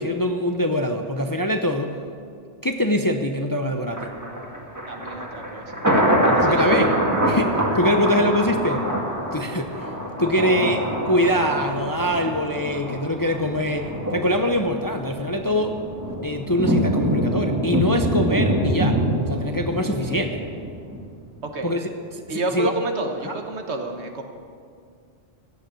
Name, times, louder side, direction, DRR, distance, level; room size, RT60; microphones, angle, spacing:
voice 1, 0.0-1.9 2.6-4.1 6.4-6.9 7.3-9.0 9.3-9.9 10.2-15.8 16.2-19.0 19.3-20.4 21.6-22.7 23.2-23.4, left 1 dB, 25° left, 5 dB, 0.6 m, -23 dB
Thunder, 3.9-21.0 21.4-21.5, right 1 dB, 15° right, 1.7 m, -25 dB
voice 2, 4.9-5.7 6.3-6.9 21.4-21.7 22.3-24.2, right 2 dB, 70° right, 5 dB, 1.5 m, -29 dB
16.0 x 6.6 x 9.8 m, 2.2 s
omnidirectional pair, 1.2 m